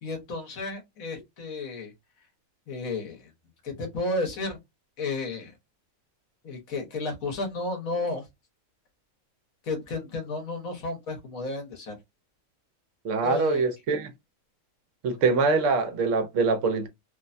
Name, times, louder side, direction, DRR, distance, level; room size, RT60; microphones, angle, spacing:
voice 1, 0.0-1.9 2.7-3.3 3.6-4.6 5.0-5.5 6.4-8.3 9.6-12.0 13.2-13.6, left 3 dB, 80° left, 1.5 m, -32 dB
voice 2, 13.0-14.1 15.0-16.9, right 4 dB, 65° right, 1.0 m, -24 dB
3.2 x 2.2 x 2.5 m
omnidirectional pair, 1.4 m